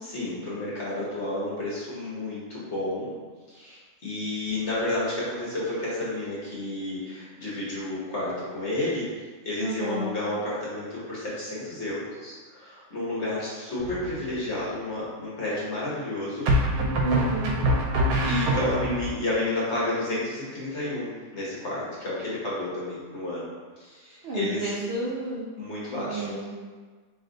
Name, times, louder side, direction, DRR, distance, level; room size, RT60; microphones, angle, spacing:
voice 1, 0.0-3.1 3.5-9.1 9.4-16.5 18.2-23.5 23.8-24.7 25.6-26.5, left 1 dB, 45° left, -7 dB, 1.4 m, -31 dB
voice 2, 9.6-10.1 17.0-17.6 24.2-25.5 26.0-26.5, right 2 dB, 90° right, -7 dB, 0.5 m, -30 dB
sound 1, 13.8-14.4 16.4-19.1, right 1 dB, 70° right, 1.0 m, -25 dB
3.2 x 2.8 x 3.8 m, 1.4 s
omnidirectional pair, 1.8 m